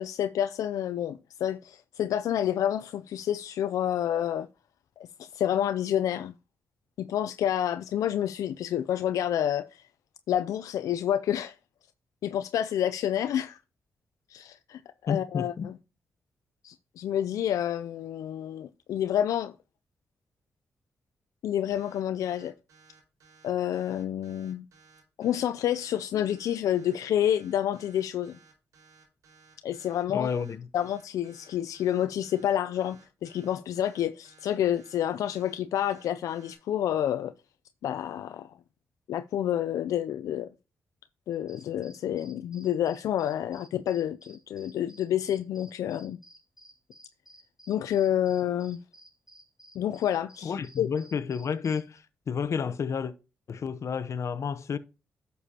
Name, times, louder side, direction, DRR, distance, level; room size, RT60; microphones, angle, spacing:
voice 1, 0.0-4.5 5.0-6.3 7.0-9.9 10.3-11.6 12.2-13.6 14.3-15.7 16.6-19.5 21.4-22.5 23.4-24.6 25.2-28.4 29.6-30.4 30.7-37.3 37.8-38.5 39.1-40.5 41.3-46.2 47.7-48.8 49.7-50.9, left 10 dB, 85° left, 0.4 m, -29 dB
voice 2, 15.1-15.7 30.1-30.6 50.4-53.1 53.5-54.8, left 6 dB, 60° left, 0.7 m, -31 dB
sound 1, 21.7-36.5, right 5 dB, 85° right, 4.8 m, -58 dB
sound 2, 41.3-52.0, right 1 dB, 10° right, 5.1 m, -55 dB
11.0 x 6.9 x 2.9 m
supercardioid pair, 55°, 6 cm